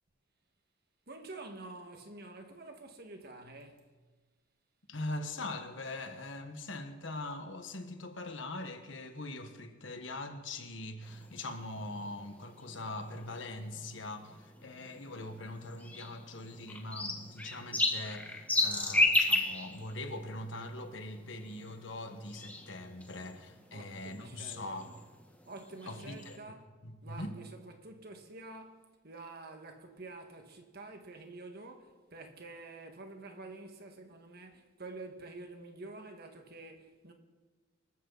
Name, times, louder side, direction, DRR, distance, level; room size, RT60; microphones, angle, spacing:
voice 1, 1.1-3.8 23.7-25.0 25.5-26.7 27.0-37.1, right 2 dB, 50° right, 1.9 m, -48 dB
voice 2, 4.9-24.9 25.8-26.6 26.8-27.4, left 2 dB, 65° left, 1.6 m, -42 dB
sound 1, 11.0-26.4, left 2 dB, 10° left, 1.5 m, -35 dB
24.5 x 14.0 x 4.1 m
head